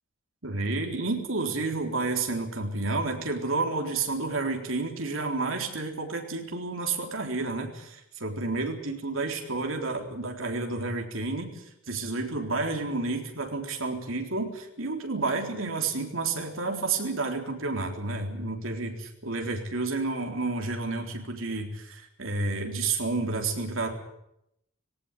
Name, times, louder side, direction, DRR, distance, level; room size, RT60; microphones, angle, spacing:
voice 1, 0.4-23.9, right 3 dB, 80° right, 3 dB, 3.8 m, -30 dB
19.0 x 18.0 x 10.0 m, 0.79 s
head